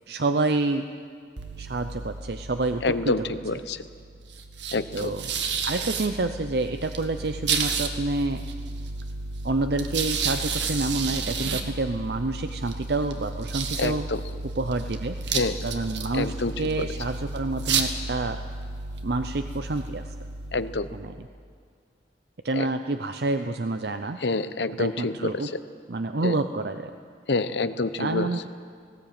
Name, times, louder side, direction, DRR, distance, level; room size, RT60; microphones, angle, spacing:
voice 1, 0.1-0.9 1.6-3.6 4.9-5.3 5.6-8.4 9.4-14.1 14.6-18.4 19.0-20.1 20.9-21.3 22.4-24.2 24.7-25.5 25.9-26.9 28.0-28.5, right 2 dB, 65° right, 8 dB, 0.7 m, -28 dB
sound 1, 1.4-21.3, right 4 dB, 85° right, 1.6 m, -32 dB
voice 2, 2.8-3.2 3.4-3.8 4.7-5.1 13.8-13.9 15.3-15.5 16.1-16.5 20.5-20.9 22.5-22.6 24.2-25.1 26.2-26.3 27.3-28.3, left 3 dB, 75° left, 12 dB, 0.9 m, -26 dB
19.0 x 17.0 x 8.9 m, 2.1 s
head